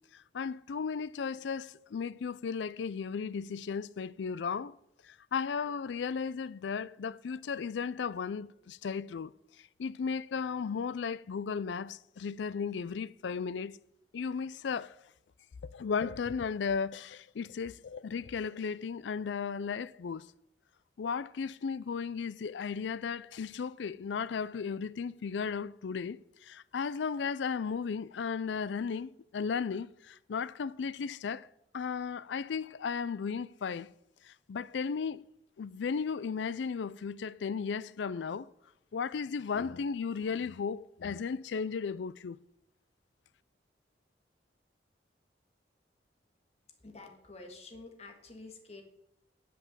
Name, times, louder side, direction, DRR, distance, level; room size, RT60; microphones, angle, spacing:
voice 1, 0.1-4.7 5.0-9.3 9.8-13.8 14.1-15.0 15.6-20.3 21.0-31.5 31.7-33.9 34.2-35.2 35.6-38.5 38.9-42.4, left 6 dB, 85° left, 0.4 m, -35 dB
voice 2, 46.8-48.8, left 3 dB, 35° left, 1.6 m, -49 dB
10.5 x 5.9 x 7.4 m
head